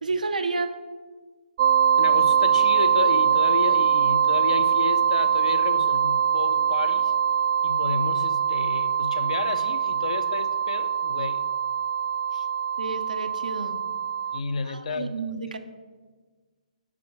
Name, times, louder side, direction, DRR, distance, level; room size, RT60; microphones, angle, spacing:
voice 1, 0.0-0.8 12.8-13.8 14.6-15.6, right 3 dB, 80° right, 8 dB, 0.7 m, -30 dB
sound 1, 1.6-14.4, right 8 dB, 45° right, 0.3 m, -23 dB
voice 2, 2.0-7.1 7.6-11.4 12.3-12.5 14.3-15.1, left 5 dB, 60° left, 11 dB, 0.5 m, -32 dB
6.1 x 4.5 x 5.9 m, 1.4 s
figure-of-eight pair, 135°, 4 cm